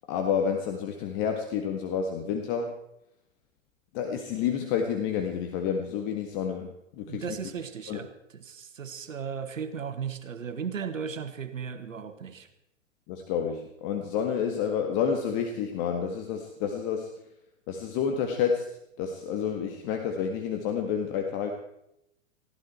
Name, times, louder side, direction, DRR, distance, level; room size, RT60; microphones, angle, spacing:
voice 1, 0.1-2.7 3.9-7.4 7.9-8.0 13.1-17.1 17.7-18.7 19.0-21.5, left 7 dB, 35° left, 4 dB, 1.9 m, -29 dB
voice 2, 7.1-12.5, right 7 dB, 75° right, 9 dB, 1.7 m, -36 dB
19.5 x 16.0 x 4.5 m, 0.82 s
figure-of-eight pair, 115°, 39 cm